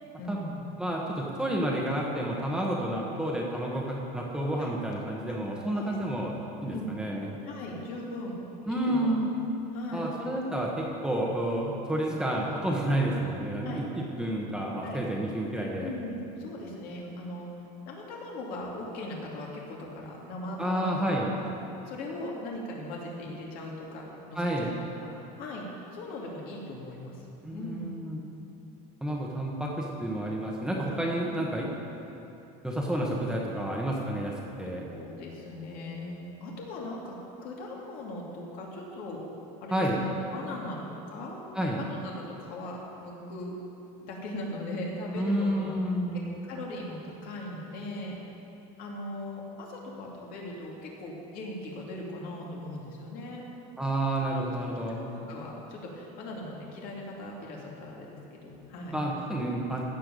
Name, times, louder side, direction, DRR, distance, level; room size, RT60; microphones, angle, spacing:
voice 1, 0.2-0.6 4.6-4.7 5.3-5.4 5.7-6.0 6.7-6.9 7.4-9.2 9.7-10.1 13.6-13.8 14.8-15.0 15.7-17.5 17.9-21.5 21.9-25.7 25.9-27.9 34.7-39.2 39.6-41.4 41.8-43.5 44.0-45.7 46.4-48.2 48.8-53.4 55.1-59.0, left 1 dB, 60° left, -2 dB, 2.5 m, -39 dB
voice 2, 0.8-6.3 6.6-7.3 8.7-9.3 9.9-15.9 20.6-21.3 24.3-24.7 27.4-28.2 29.0-31.7 32.6-34.3 34.6-34.8 39.7-40.0 41.5-41.8 45.2-46.4 53.8-55.0 58.9-59.8, right 1 dB, 5° right, -2 dB, 1.2 m, -30 dB
15.5 x 5.7 x 6.8 m, 2.8 s
cardioid pair, 145°, 17 cm